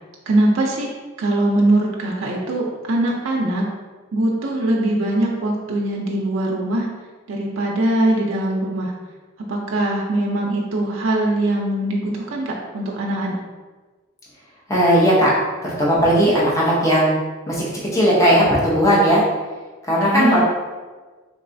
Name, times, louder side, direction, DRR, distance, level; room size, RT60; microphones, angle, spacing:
voice 1, 0.3-0.9 1.2-3.7 4.1-6.9 7.3-8.9 9.5-13.4 20.1-20.4, right 1 dB, 80° right, -2 dB, 0.5 m, -21 dB
voice 2, 14.7-15.3 15.6-17.2 17.5-19.2 19.8-20.4, equal, 15° left, -6 dB, 0.7 m, -17 dB
3.5 x 3.1 x 2.6 m, 1.3 s
head